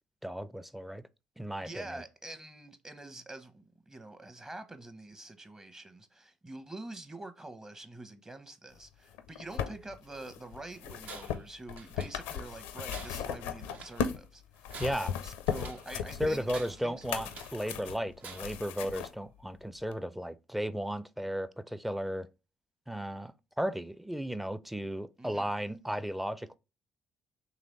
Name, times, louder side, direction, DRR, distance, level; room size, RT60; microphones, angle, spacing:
voice 1, 0.2-1.0 1.4-2.0 14.8-15.1 16.2-22.3 22.9-26.6, equal, 5° right, 0.4 m, -35 dB
voice 2, 1.6-14.8 15.2-17.0 25.2-25.5, right 2 dB, 20° right, 0.8 m, -46 dB
sound 1, 9.1-14.3 14.6-19.1 19.9-20.0, left 8 dB, 75° left, 0.5 m, -37 dB
Tools, 11.0-11.5 11.8-12.5 12.9-14.0 14.6-15.9 16.5-17.6 18.2-18.7, right 5 dB, 55° right, 0.5 m, -49 dB
3.9 x 3.1 x 3.0 m
hypercardioid pair, 50°, 3 cm